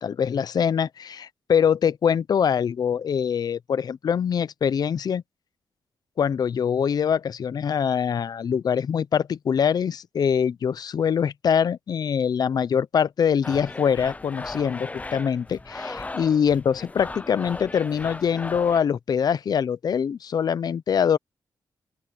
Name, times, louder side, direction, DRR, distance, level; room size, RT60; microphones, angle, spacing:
voice 1, 0.0-5.2 6.2-21.2, left 7 dB, 60° left, 0.7 m, -24 dB
sound 1, 13.4-18.8, left 2 dB, 20° left, 0.6 m, -37 dB
open air
cardioid pair, 85°, 7 cm